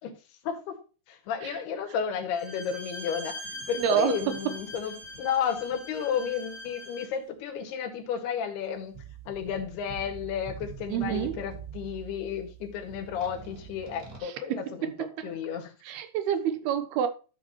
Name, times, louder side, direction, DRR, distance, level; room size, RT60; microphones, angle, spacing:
voice 1, 0.4-0.8 1.1-8.9 9.3-14.9 15.2-15.7, left 8 dB, 75° left, 3.8 m, -32 dB
Bowed string instrument, 2.3-7.2, left 1 dB, 20° right, 3.1 m, -42 dB
sound 1, 3.4-6.4 8.9-14.2, right 7 dB, 40° right, 1.3 m, -45 dB
voice 2, 3.8-4.6 10.9-11.4 14.2-15.4 15.8-17.1, right 9 dB, 75° right, 2.9 m, -29 dB
11.5 x 7.6 x 3.1 m
omnidirectional pair, 4.7 m